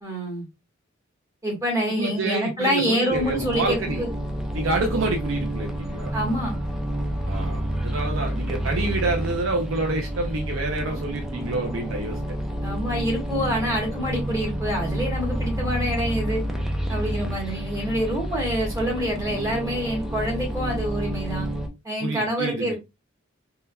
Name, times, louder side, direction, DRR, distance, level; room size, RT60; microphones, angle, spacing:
voice 1, 0.0-0.4 1.4-4.1 6.1-6.6 12.6-16.4 16.9-21.5 21.8-22.8, equal, 20° right, 1.5 m, -26 dB
voice 2, 1.9-4.0 4.5-6.1 7.2-12.2 22.0-22.8, right 2 dB, 85° right, 0.6 m, -28 dB
sound 1, 3.1-21.7, right 1 dB, 5° right, 0.5 m, -29 dB
3.6 x 2.8 x 2.2 m
head